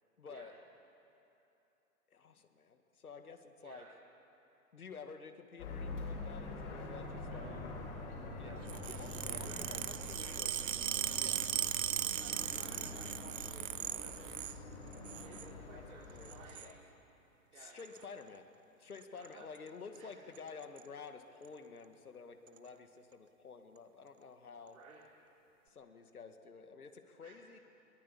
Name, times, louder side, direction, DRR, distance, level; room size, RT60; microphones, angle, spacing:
voice 1, 0.2-0.5 2.1-3.9 4.7-7.5 8.4-10.6 11.1-11.5 12.9-13.0 15.6-15.8 16.1-16.8 17.5-18.5 18.8-24.8 25.7-27.6, left 5 dB, 85° left, 7 dB, 1.9 m, -51 dB
voice 2, 3.6-4.0 7.2-7.6 8.4-10.0 12.2-14.6 15.2-16.8 17.5-17.8 19.2-19.5 20.0-20.1 24.7-25.0 27.2-27.6, right 4 dB, 75° right, -6 dB, 3.8 m, -57 dB
sound 1, 5.6-16.5, left 2 dB, 55° left, 6.1 m, -45 dB
sound 2, 8.7-14.6 14.9-15.5 16.2-16.7 17.8-18.0 19.0-19.3 19.6-19.7 20.0-20.1 20.4-20.8 21.4-21.5 22.5-22.6, right 12 dB, 60° right, 1.0 m, -38 dB
22.0 x 17.5 x 8.5 m, 2.9 s
hypercardioid pair, 125°, 43 cm